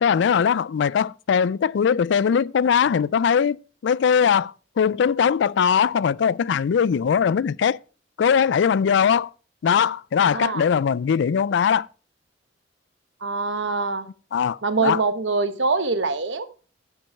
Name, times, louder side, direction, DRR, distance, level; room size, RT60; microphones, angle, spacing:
voice 1, 0.0-3.6 3.8-7.8 8.2-9.3 9.6-11.9 14.3-15.0, left 7 dB, 65° left, 0.3 m, -20 dB
voice 2, 10.3-10.7 13.2-14.1 14.6-16.4, right 3 dB, 75° right, 1.1 m, -24 dB
12.0 x 5.3 x 5.6 m
head